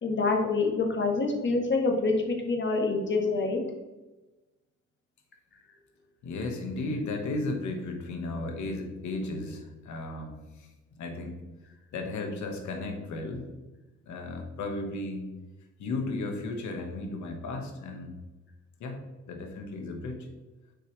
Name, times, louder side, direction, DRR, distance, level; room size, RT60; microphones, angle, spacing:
voice 1, 0.0-3.6, left 3 dB, 40° left, 1 dB, 1.6 m, -26 dB
voice 2, 6.2-10.7 11.0-11.4 11.9-13.4 14.1-15.2 15.8-18.1 18.8-19.0 19.3-20.3, left 2 dB, 70° left, 3 dB, 1.4 m, -34 dB
6.5 x 5.2 x 3.2 m, 1.1 s
cardioid pair, 90°, 30 cm